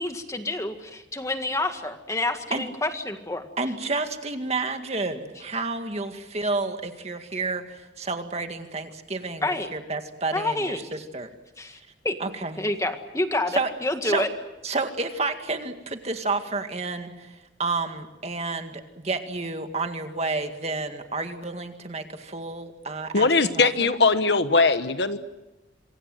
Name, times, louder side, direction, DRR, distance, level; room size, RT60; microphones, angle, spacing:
voice 1, 0.0-3.5 9.4-9.7 10.3-10.8 11.6-11.8 12.0-12.2 12.6-14.3, left 2 dB, 15° left, 7 dB, 1.9 m, -28 dB
voice 2, 3.6-11.3 12.2-12.6 13.6-13.7 14.0-14.2 14.6-23.9, right 3 dB, 35° right, 6 dB, 2.1 m, -30 dB
voice 3, 23.1-25.2, left 4 dB, 65° left, 11 dB, 1.2 m, -20 dB
26.5 x 24.0 x 7.9 m, 1.0 s
head